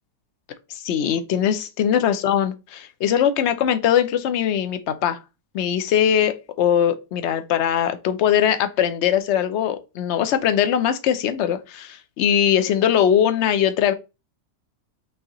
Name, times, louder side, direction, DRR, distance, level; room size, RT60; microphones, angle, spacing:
voice 1, 0.7-5.2 5.5-13.9, left 9 dB, 60° left, 0.7 m, -21 dB
5.4 x 3.4 x 2.9 m
omnidirectional pair, 1.7 m